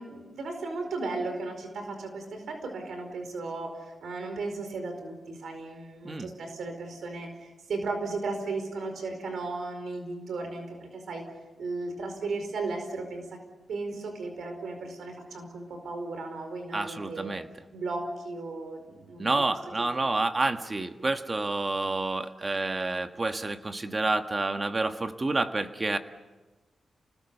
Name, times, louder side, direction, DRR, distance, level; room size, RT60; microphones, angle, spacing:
voice 1, 0.0-11.2 11.6-13.4 13.7-17.4 17.7-19.3 19.8-20.0, right 3 dB, 80° right, 5 dB, 4.8 m, -35 dB
voice 2, 16.7-17.5 19.2-26.0, right 2 dB, 30° right, 7 dB, 1.6 m, -29 dB
29.5 x 20.0 x 6.9 m, 1.2 s
cardioid pair, 85°, 0 cm